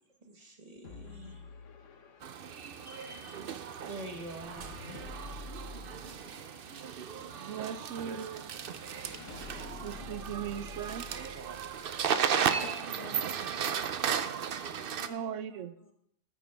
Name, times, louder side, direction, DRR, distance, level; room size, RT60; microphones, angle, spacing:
voice 1, 0.2-1.4 2.8-3.4 3.9-4.7, right 1 dB, 30° right, 4 dB, 1.3 m, -46 dB
sound 1, 0.8-12.1, left 5 dB, 80° left, 1.3 m, -50 dB
sound 2, 2.2-15.1, right 7 dB, 55° right, 0.7 m, -35 dB
voice 2, 7.3-8.6 9.8-11.1 15.1-15.7, right 8 dB, 80° right, 12 dB, 1.0 m, -39 dB
voice 3, 12.6-13.4 15.0-15.9, left 2 dB, 25° left, 3 dB, 1.2 m, -50 dB
13.5 x 8.9 x 3.4 m, 0.69 s
omnidirectional pair, 1.3 m